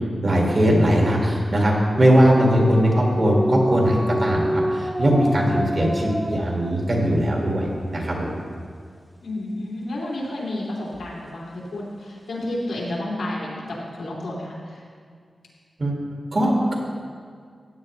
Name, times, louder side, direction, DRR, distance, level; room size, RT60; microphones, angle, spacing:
voice 1, 0.2-8.3 15.8-16.0 16.3-16.8, equal, 40° right, -1 dB, 1.9 m, -20 dB
sound 1, 1.9-7.2, equal, 5° left, 0.7 m, -27 dB
voice 2, 9.2-14.8, left 1 dB, 90° left, -5 dB, 2.9 m, -31 dB
15.5 x 9.0 x 3.2 m, 2.1 s
wide cardioid pair, 170°, 0 cm